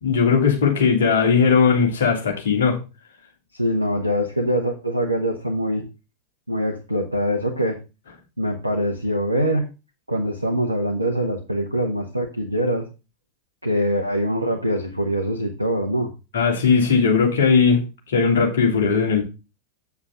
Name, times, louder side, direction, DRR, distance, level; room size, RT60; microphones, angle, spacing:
voice 1, 0.0-2.8 16.3-17.8 18.1-19.2, left 5 dB, 60° left, 3.1 m, -18 dB
voice 2, 3.5-5.8 6.5-7.8 8.4-9.6 10.1-12.9 13.6-16.1, equal, 85° right, 1.2 m, -23 dB
8.4 x 7.2 x 3.8 m
figure-of-eight pair, 90°, 0 cm